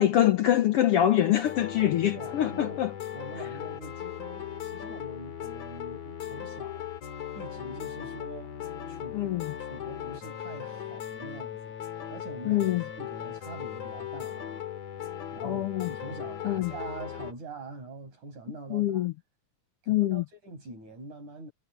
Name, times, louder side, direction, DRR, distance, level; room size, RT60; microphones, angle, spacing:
voice 1, 0.0-2.9 9.1-9.5 12.5-12.8 15.4-15.9 16.4-16.7 18.7-19.1 19.9-20.2, left 12 dB, 80° left, 1.3 m, -24 dB
sound 1, 1.4-17.3, left 10 dB, 60° left, 3.4 m, -38 dB
voice 2, 1.7-2.8 3.1-6.9 7.3-8.5 8.9-9.3 9.6-14.5 15.3-19.1 19.8-21.5, right 3 dB, 65° right, 8.2 m, -44 dB
omnidirectional pair, 3.7 m